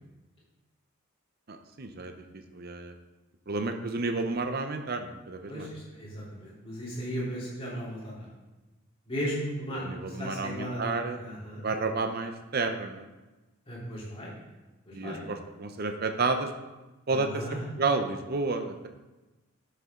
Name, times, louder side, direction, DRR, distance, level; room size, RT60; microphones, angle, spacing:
voice 1, 1.5-2.1 2.5-2.9 3.5-5.7 9.8-11.2 11.6-13.1 14.9-16.5 17.1-17.4 17.8-18.9, right 3 dB, 45° right, 6 dB, 0.7 m, -31 dB
voice 2, 5.5-8.3 9.0-10.8 11.1-11.6 13.7-14.3 14.9-15.2 17.1-17.6, equal, 25° left, -7 dB, 3.3 m, -36 dB
11.0 x 6.9 x 3.7 m, 1.1 s
head